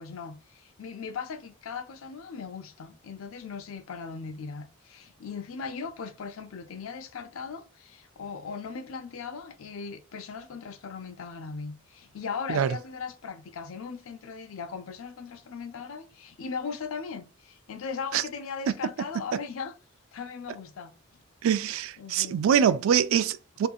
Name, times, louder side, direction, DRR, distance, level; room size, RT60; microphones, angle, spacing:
voice 1, 0.0-19.8 20.1-21.2 22.0-22.4, left 5 dB, 80° left, 0.5 m, -38 dB
voice 2, 21.4-23.7, right 8 dB, 80° right, 0.3 m, -24 dB
2.6 x 2.6 x 2.3 m
head